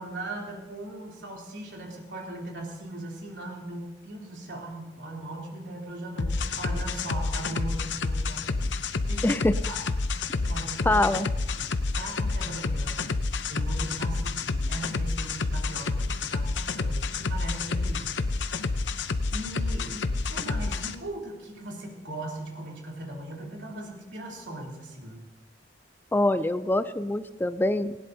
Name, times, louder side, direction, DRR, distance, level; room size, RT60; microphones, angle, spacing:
voice 1, 0.0-8.5 9.1-9.3 9.7-9.8 10.5-11.0 11.6-13.1 13.5-18.1 18.5-19.0 19.3-25.2, right 1 dB, 80° right, -2 dB, 3.2 m, -39 dB
sound 1, 6.2-20.9, left 3 dB, 85° left, 0.7 m, -29 dB
voice 2, 9.2-9.5 10.9-11.3 26.1-28.0, left 1 dB, 10° left, 12 dB, 0.3 m, -24 dB
18.5 x 16.5 x 2.7 m, 1.1 s
head